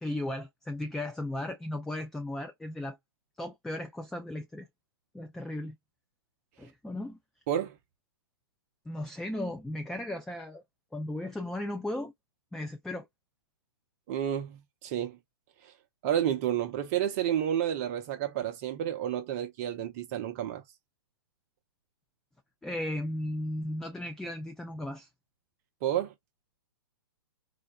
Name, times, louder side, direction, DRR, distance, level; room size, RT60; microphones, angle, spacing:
voice 1, 0.0-3.0 3.4-4.7 5.1-5.8 6.6-7.2 8.9-10.6 10.9-12.1 12.5-13.1 22.6-25.1, left 1 dB, 5° left, 0.3 m, -36 dB
voice 2, 14.1-15.2 15.6-15.7 16.0-20.6 25.8-26.1, right 10 dB, 40° right, 0.6 m, -30 dB
4.0 x 2.1 x 2.2 m
hypercardioid pair, 120°, 13 cm